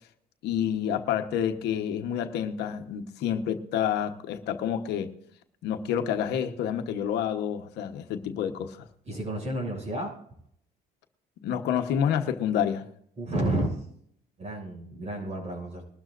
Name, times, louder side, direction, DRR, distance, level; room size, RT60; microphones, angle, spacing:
voice 1, 0.4-5.1 5.6-8.9 11.4-12.9, left 9 dB, 80° left, 7 dB, 1.2 m, -28 dB
voice 2, 9.1-10.2 13.2-13.8 14.4-15.8, right 1 dB, 40° right, 1 dB, 6.7 m, -31 dB
21.0 x 12.5 x 2.6 m, 0.69 s
cardioid pair, 110°, 17 cm